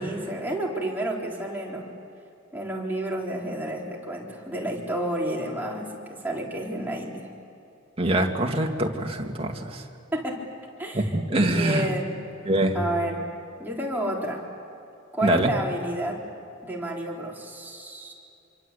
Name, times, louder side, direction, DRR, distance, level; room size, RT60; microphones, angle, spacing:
voice 1, 0.0-1.9 2.5-7.3 10.1-10.4 10.8-11.1 11.5-12.1 12.7-13.3 13.6-14.5 15.1-16.2 16.6-18.1, right 1 dB, 10° right, -3 dB, 4.0 m, -30 dB
voice 2, 8.0-9.8 10.9-11.9 12.5-12.8 15.2-15.5, right 1 dB, 30° right, 1 dB, 2.3 m, -24 dB
27.0 x 24.5 x 8.4 m, 2.8 s
head